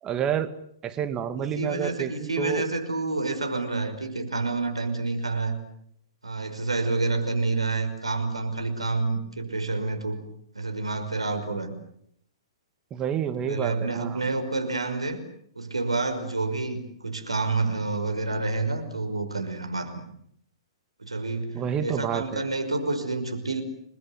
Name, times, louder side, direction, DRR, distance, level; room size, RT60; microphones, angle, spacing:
voice 1, 0.0-0.5 0.8-2.7 12.9-14.2 21.5-22.4, right 8 dB, 20° right, 10 dB, 2.0 m, -29 dB
voice 2, 1.4-5.6 6.2-10.2 10.5-11.8 13.4-15.2 15.6-20.0 21.0-23.6, right 3 dB, 85° right, 7 dB, 5.6 m, -28 dB
29.5 x 21.0 x 7.9 m, 0.69 s
figure-of-eight pair, 120°, 3 cm